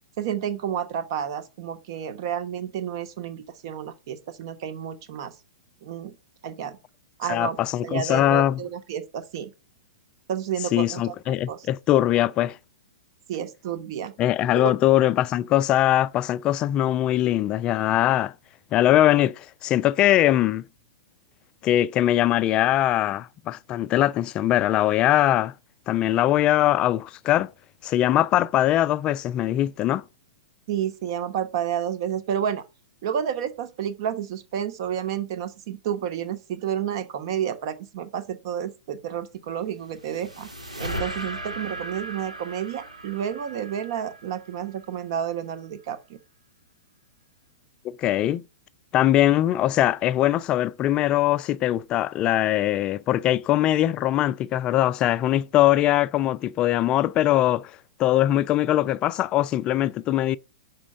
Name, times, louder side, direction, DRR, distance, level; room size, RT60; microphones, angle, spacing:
voice 1, 0.2-5.3 5.8-6.1 6.4-6.8 7.2-9.5 10.3-11.0 11.5-11.7 13.3-14.1 14.5-14.7 30.7-32.6 33.0-40.5 40.8-46.2, right 9 dB, 45° right, 1.0 m, -30 dB
voice 2, 7.3-8.6 10.7-12.6 14.2-18.3 18.7-20.6 21.6-25.5 25.9-27.5 27.8-30.0 47.8-48.4 48.9-57.7 58.0-60.4, left 13 dB, 25° left, 0.3 m, -21 dB
sound 1, 39.6-45.0, right 1 dB, 85° right, 1.8 m, -37 dB
6.1 x 4.3 x 6.4 m
figure-of-eight pair, 105°, 4 cm